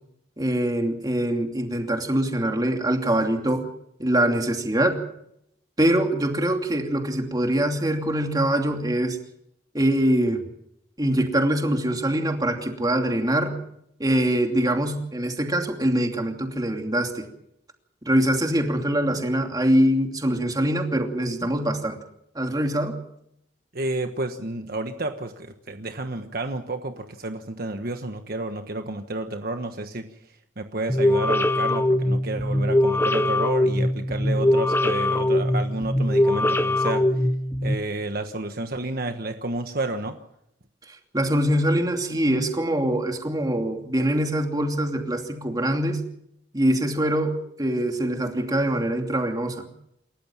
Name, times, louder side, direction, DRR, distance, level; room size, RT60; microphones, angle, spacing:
voice 1, 0.4-3.7 4.0-5.0 5.8-9.2 9.7-10.5 11.0-13.6 14.0-17.3 18.0-22.0 22.3-23.0 40.9-46.0 46.5-49.7, right 1 dB, 20° right, 3 dB, 2.8 m, -23 dB
voice 2, 23.7-30.2 30.6-37.3 37.6-40.2, right 2 dB, 55° right, 6 dB, 1.3 m, -31 dB
sound 1, 30.9-37.8, left 1 dB, 15° left, 1.0 m, -22 dB
28.5 x 14.0 x 7.3 m, 0.76 s
head